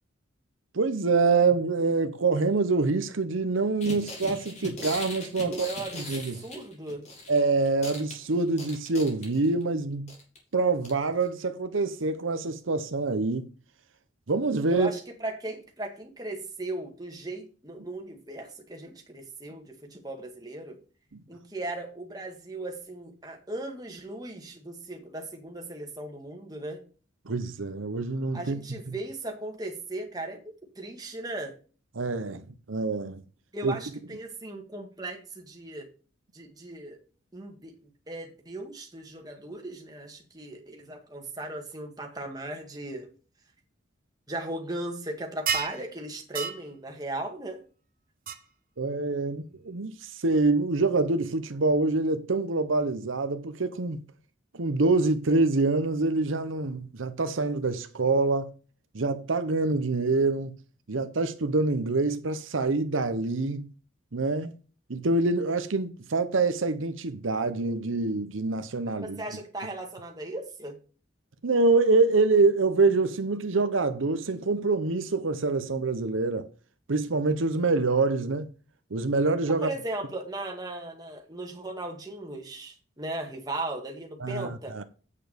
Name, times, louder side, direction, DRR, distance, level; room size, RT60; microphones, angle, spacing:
voice 1, 0.7-5.7 5.9-6.4 7.3-10.1 10.5-13.4 14.3-14.9 27.3-28.6 31.9-33.2 33.6-33.7 48.8-54.0 54.5-58.5 58.9-60.5 60.9-63.7 64.1-64.5 64.9-69.2 71.4-76.5 76.9-78.5 78.9-79.7 84.2-84.8, right 3 dB, 80° right, 0.8 m, -25 dB
sound 1, 3.8-7.4 7.7-9.6 10.1-10.4 10.8-10.9 11.2-11.3, left 1 dB, 35° left, 3.3 m, -39 dB
voice 2, 5.4-7.0 14.7-20.8 21.3-26.8 28.3-30.4 30.8-31.5 33.5-35.9 36.3-37.0 37.3-37.7 38.1-43.1 44.3-47.6 68.9-70.8 79.6-84.8, right 2 dB, 20° right, 2.0 m, -37 dB
sound 2, 45.5-45.8 46.3-46.6 48.3-48.4, right 6 dB, 45° right, 0.8 m, -28 dB
8.6 x 6.9 x 5.1 m
head